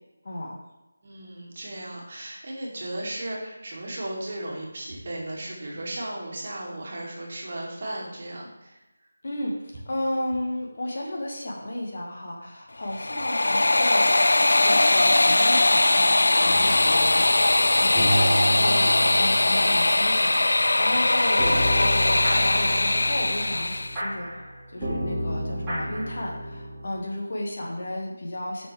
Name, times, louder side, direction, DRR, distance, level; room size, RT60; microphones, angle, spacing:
voice 1, 1.0-8.8 27.6-27.8, right 1 dB, 40° right, -3 dB, 2.1 m, -35 dB
voice 2, 9.2-14.2 14.6-17.3 17.8-24.3 24.7-28.7, left 1 dB, 45° left, -1 dB, 1.7 m, -33 dB
sound 1, 12.9-24.0, left 2 dB, 60° left, 0.3 m, -20 dB
Chill Lofi piano music, 16.4-26.9, right 1 dB, 10° right, 2.7 m, -31 dB
11.0 x 6.2 x 3.4 m, 1.0 s
figure-of-eight pair, 160°, 0 cm